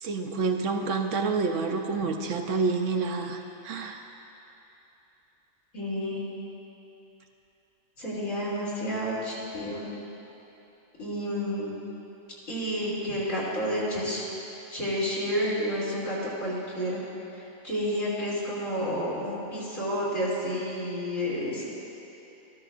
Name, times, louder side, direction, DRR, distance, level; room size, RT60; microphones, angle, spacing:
voice 1, 0.0-4.1, right 4 dB, 70° right, 4 dB, 0.9 m, -28 dB
voice 2, 5.7-6.2 8.0-9.9 11.0-11.7 12.5-14.2 14.7-17.0 17.3-21.7, equal, 80° left, -8 dB, 3.2 m, -30 dB
13.5 x 13.0 x 2.5 m, 3.0 s
omnidirectional pair, 1.4 m